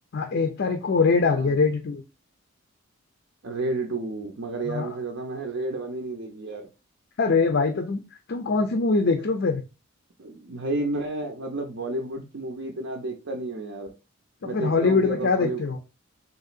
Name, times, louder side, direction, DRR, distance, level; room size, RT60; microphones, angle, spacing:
voice 1, 0.1-2.0 4.6-4.9 7.2-8.0 8.3-9.6 14.4-15.8, left 4 dB, 55° left, 5 dB, 0.5 m, -23 dB
voice 2, 3.4-6.7 10.2-13.9 14.4-15.8, right 2 dB, 60° right, 2 dB, 0.6 m, -31 dB
3.7 x 2.9 x 2.4 m, 0.28 s
head